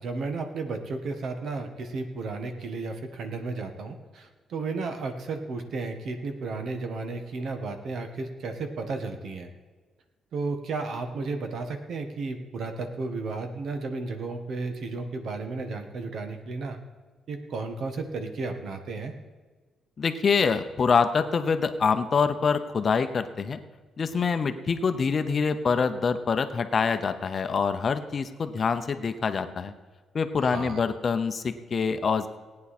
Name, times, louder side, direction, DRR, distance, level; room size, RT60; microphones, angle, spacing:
voice 1, 0.0-9.5 10.3-16.8 17.3-19.1 30.4-30.8, right 3 dB, 60° right, 6 dB, 1.5 m, -33 dB
voice 2, 20.0-23.6 24.0-29.7 30.1-32.3, left 5 dB, 35° left, 9 dB, 0.7 m, -25 dB
18.0 x 9.5 x 4.3 m, 1.4 s
cardioid pair, 155°, 0 cm